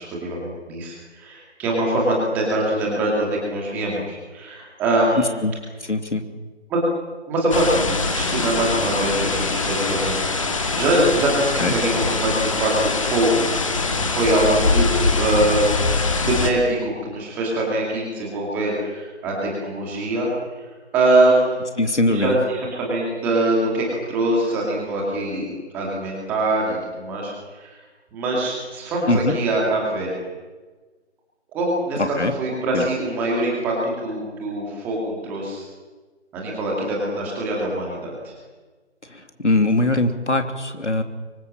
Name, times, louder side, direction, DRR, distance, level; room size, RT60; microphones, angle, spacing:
voice 1, 0.0-5.4 6.7-6.8 7.3-7.9 8.1-13.5 14.0-15.6 16.2-20.3 20.9-21.6 22.1-27.7 28.1-30.1 31.5-35.6 36.3-38.3, right 1 dB, 5° right, -2 dB, 2.4 m, -23 dB
voice 2, 5.2-5.5 5.8-6.2 11.6-11.8 21.8-22.4 29.1-29.4 32.0-32.3 32.7-32.8 39.1-41.0, left 2 dB, 90° left, 6 dB, 3.1 m, -21 dB
sound 1, 7.5-16.5, left 3 dB, 30° left, 1.9 m, -23 dB
24.5 x 24.0 x 7.5 m, 1.3 s
figure-of-eight pair, 165°, 34 cm